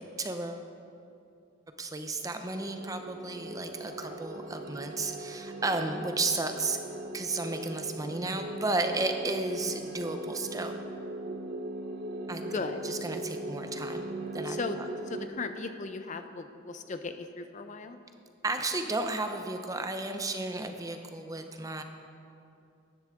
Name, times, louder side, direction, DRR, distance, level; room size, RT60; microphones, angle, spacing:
voice 1, 0.2-0.6 1.8-6.8 7.1-10.7 12.3-14.1 14.3-14.6 18.4-21.8, right 2 dB, 15° right, 6 dB, 0.6 m, -33 dB
sound 1, 2.5-15.3, right 2 dB, 50° right, 0.8 m, -39 dB
voice 2, 12.5-12.8 14.5-14.8 15.1-18.0, left 3 dB, 35° left, 8 dB, 0.5 m, -37 dB
14.0 x 10.5 x 3.7 m, 2.6 s
head